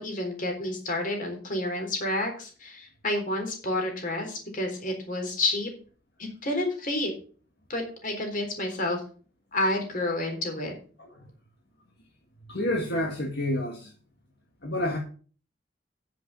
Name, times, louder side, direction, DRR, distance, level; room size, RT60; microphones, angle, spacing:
voice 1, 0.0-5.7 6.4-7.1 7.7-9.0 9.5-10.7, left 1 dB, 45° left, 3 dB, 3.8 m, -29 dB
voice 2, 12.5-13.9 14.6-15.0, left 1 dB, 60° left, 0 dB, 2.0 m, -29 dB
8.7 x 7.4 x 6.9 m, 0.41 s
head